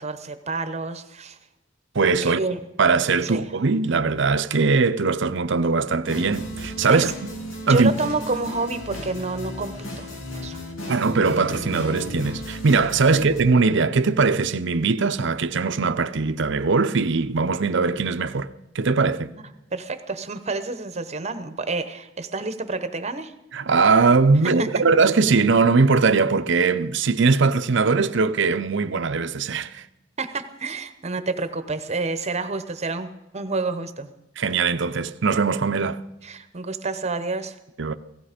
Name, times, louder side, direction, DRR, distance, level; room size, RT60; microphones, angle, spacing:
voice 1, 0.0-1.4 2.2-2.6 3.2-3.4 6.9-7.1 7.7-10.6 19.4-23.3 24.4-24.8 30.2-33.1 33.3-34.1 36.2-37.6, right 3 dB, 35° right, 0.9 m, -29 dB
voice 2, 1.9-2.4 2.8-7.1 7.7-7.9 10.9-18.5 18.7-19.3 23.5-29.8 34.4-36.0 37.8-37.9, right 4 dB, 65° right, 0.7 m, -20 dB
sound 1, 6.0-13.4, left 1 dB, 90° left, 2.4 m, -35 dB
17.0 x 15.0 x 5.1 m
head